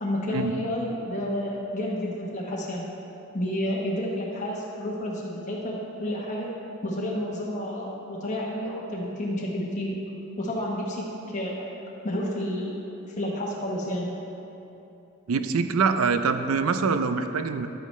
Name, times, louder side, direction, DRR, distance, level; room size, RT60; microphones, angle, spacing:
voice 1, 0.0-2.8 3.3-6.5 6.8-10.0 10.4-11.6 12.0-12.7 13.2-14.1, left 1 dB, 35° left, -4 dB, 1.0 m, -30 dB
voice 2, 15.3-17.7, right 5 dB, 85° right, 9 dB, 0.5 m, -24 dB
11.0 x 8.3 x 3.2 m, 2.9 s
head